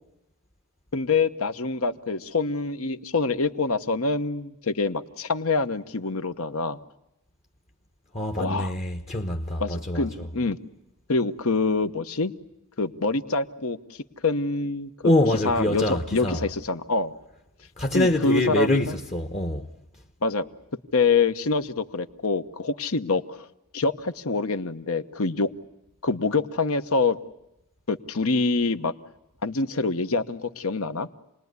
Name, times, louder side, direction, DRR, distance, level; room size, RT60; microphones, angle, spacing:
voice 1, 0.9-6.8 8.4-8.7 9.6-10.6 11.1-12.3 12.8-13.8 14.2-14.9 15.4-17.1 17.9-18.8 20.2-20.4 20.9-23.5 23.7-25.5 26.0-27.2 27.9-28.9 29.4-31.1, left 3 dB, 65° left, 1.1 m, -25 dB
voice 2, 8.1-10.1 15.0-16.4 17.8-19.7, left 1 dB, 30° left, 1.1 m, -24 dB
28.0 x 20.5 x 9.6 m
head